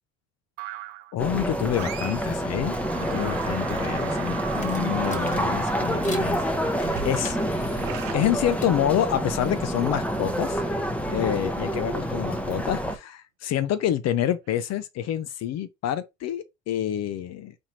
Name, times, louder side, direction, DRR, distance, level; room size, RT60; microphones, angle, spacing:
sound 1, 0.6-1.1 1.7-2.4 2.7-9.1, right 12 dB, 75° right, 0.6 m, -39 dB
voice 1, 1.1-6.4 6.7-7.4 8.1-10.6 11.1-17.5, left 11 dB, 50° left, 0.7 m, -27 dB
sound 2, 1.2-13.0, equal, 5° left, 0.9 m, -28 dB
sound 3, 4.5-6.3 6.8-8.8 9.1-11.8, left 3 dB, 20° left, 1.2 m, -45 dB
4.2 x 2.7 x 3.1 m
hypercardioid pair, 70°, 33 cm